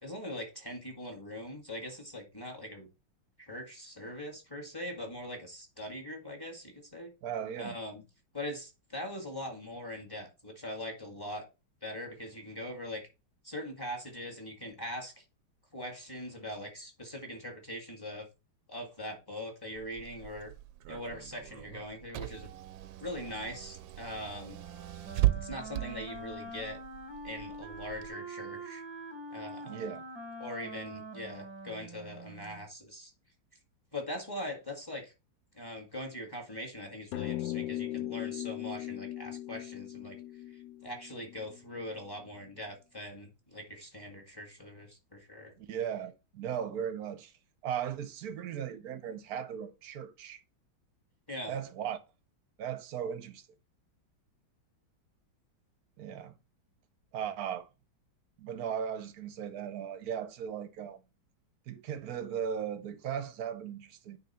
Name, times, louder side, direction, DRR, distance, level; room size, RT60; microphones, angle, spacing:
voice 1, 0.0-2.9 3.4-7.1 7.6-8.0 8.3-11.4 11.8-13.0 13.4-15.2 15.7-18.3 18.7-20.5 20.9-22.5 23.0-24.6 25.3-26.8 27.2-28.8 29.3-29.8 30.4-33.1 33.9-35.1 35.5-40.2 40.8-45.5 51.3-51.6, left 1 dB, 10° left, 1.6 m, -41 dB
voice 2, 7.2-7.8 29.7-30.0 45.6-47.3 47.6-50.4 51.5-52.0 52.6-53.5 56.0-56.3 57.1-57.7 58.4-61.0 61.7-64.2, right 8 dB, 60° right, 1.0 m, -37 dB
Car / Engine, 19.8-28.1, right 15 dB, 75° right, 1.2 m, -37 dB
Wind instrument woodwind instrument, 24.5-32.7, right 1 dB, 20° right, 0.7 m, -45 dB
sound 1, 37.1-41.8, left 14 dB, 70° left, 1.2 m, -38 dB
9.8 x 3.5 x 4.2 m
omnidirectional pair, 2.2 m